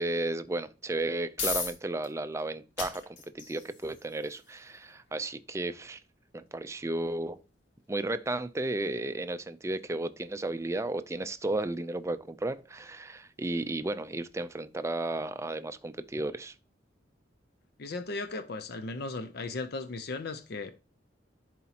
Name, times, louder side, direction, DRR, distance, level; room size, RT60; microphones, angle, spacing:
voice 1, 0.0-6.0 6.3-7.4 7.9-16.5, right 2 dB, 15° right, 0.4 m, -33 dB
sound 1, 0.9-15.8, left 4 dB, 85° left, 2.5 m, -44 dB
voice 2, 17.8-20.7, left 3 dB, 55° left, 0.5 m, -36 dB
11.0 x 4.2 x 2.8 m
head